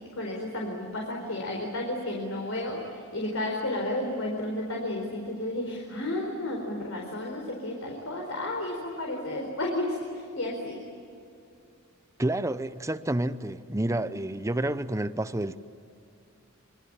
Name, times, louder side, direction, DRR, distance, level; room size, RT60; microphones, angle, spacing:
voice 1, 0.1-10.8, left 1 dB, 70° left, 0 dB, 4.5 m, -32 dB
voice 2, 12.2-15.6, right 1 dB, 15° right, 13 dB, 0.8 m, -29 dB
26.5 x 24.5 x 8.8 m, 2.5 s
head